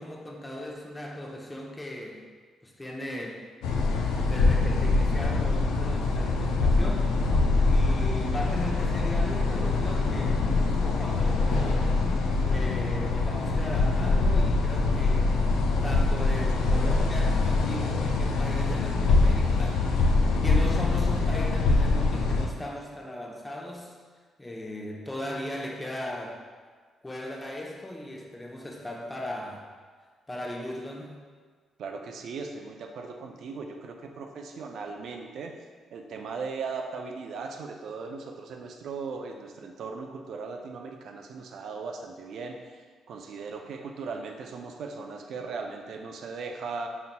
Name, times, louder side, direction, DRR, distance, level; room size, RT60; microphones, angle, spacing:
voice 1, 0.0-2.3 2.6-3.4 4.2-7.1 7.6-10.4 10.8-11.9 12.4-19.8 20.4-24.0 24.4-26.4 27.0-29.6 30.3-31.2, left 1 dB, 20° left, -1 dB, 0.7 m, -38 dB
sound 1, 3.6-22.5, left 3 dB, 85° left, 0.3 m, -24 dB
voice 2, 31.8-35.5 35.9-46.9, right 4 dB, 70° right, 3 dB, 0.4 m, -38 dB
4.1 x 4.0 x 2.2 m, 1.5 s
supercardioid pair, 70°, 0 cm